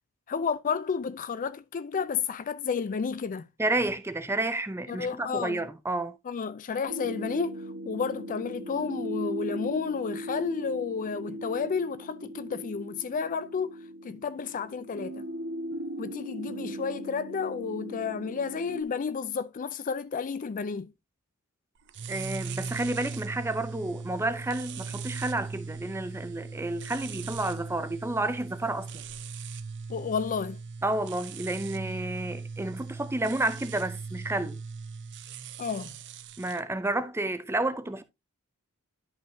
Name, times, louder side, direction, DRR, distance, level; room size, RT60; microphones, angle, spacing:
voice 1, 0.3-3.5 4.9-5.7 6.3-13.8 14.0-15.3 16.0-20.9 29.9-30.6 35.6-35.9, left 5 dB, 35° left, 0.4 m, -31 dB
voice 2, 3.6-6.2 22.1-29.0 30.8-34.6 36.4-38.0, right 2 dB, 10° right, 0.6 m, -30 dB
sound 1, 6.9-18.8, right 1 dB, 80° right, 1.3 m, -39 dB
sound 2, 21.9-36.6, right 4 dB, 55° right, 0.6 m, -39 dB
11.0 x 5.6 x 2.7 m
head